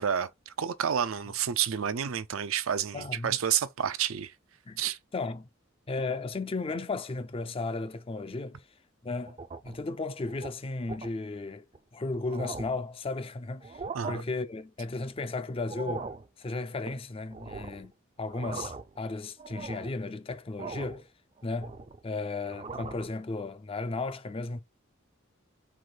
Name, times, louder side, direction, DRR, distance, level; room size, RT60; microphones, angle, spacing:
voice 1, 0.0-4.3 4.8-5.0 13.9-14.2, right 8 dB, 80° right, 0.5 m, -30 dB
voice 2, 2.9-3.4 4.7-4.8 5.1-5.5 5.9-8.6 9.0-9.4 9.6-11.7 11.9-13.8 14.1-16.1 16.4-17.9 18.2-21.1 21.4-21.8 22.0-24.6, left 3 dB, 25° left, 0.4 m, -34 dB
sound 1, 9.3-9.8 10.3-10.5 10.9-11.1 11.7-11.8 12.1-12.8 13.6-14.2 15.6-16.3 17.3-17.9 18.2-19.0 19.4-20.0 20.6-21.0 21.4-22.1 22.4-23.1, right 4 dB, 30° right, 0.4 m, -40 dB
4.7 x 2.6 x 3.8 m
head